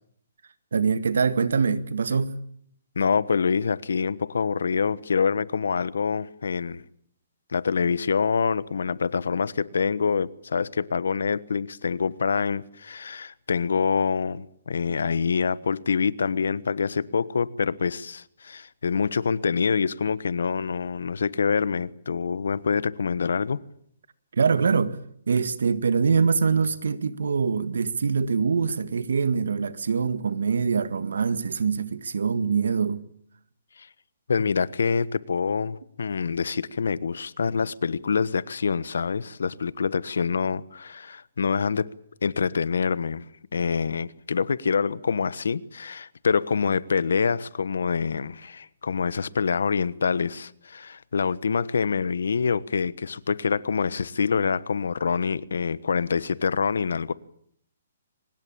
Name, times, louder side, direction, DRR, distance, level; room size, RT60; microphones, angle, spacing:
voice 1, 0.7-2.4 24.3-25.0 25.3-33.0, right 5 dB, 85° right, 1.9 m, -24 dB
voice 2, 3.0-6.8 7.5-23.6 33.8-33.9 34.3-41.9 42.2-43.3 43.5-57.1, left 5 dB, 85° left, 1.2 m, -26 dB
24.0 x 20.0 x 8.7 m
hypercardioid pair, 160°, 0 cm